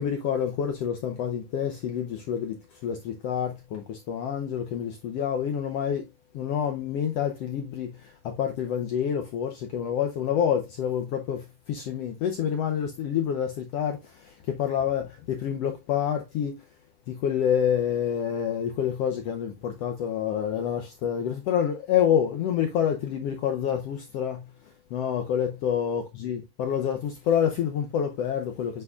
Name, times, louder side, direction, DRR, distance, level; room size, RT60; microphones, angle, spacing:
voice 1, 0.0-6.1 6.3-16.6 17.1-24.5 24.9-28.8, left 8 dB, 80° left, 1.4 m, -28 dB
8.2 x 5.3 x 2.4 m
omnidirectional pair, 3.7 m